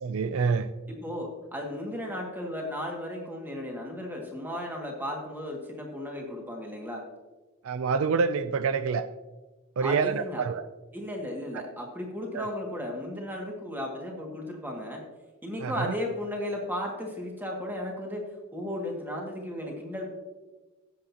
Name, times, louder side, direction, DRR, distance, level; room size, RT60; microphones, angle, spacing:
voice 1, 0.0-0.7 7.6-9.1 9.8-10.7 12.3-12.5 15.6-15.9, right 5 dB, 70° right, 12 dB, 0.4 m, -27 dB
voice 2, 0.9-7.1 9.8-10.4 10.9-15.1 15.4-20.1, left 1 dB, 10° right, 0 dB, 2.0 m, -35 dB
17.0 x 7.9 x 2.9 m, 1.2 s
head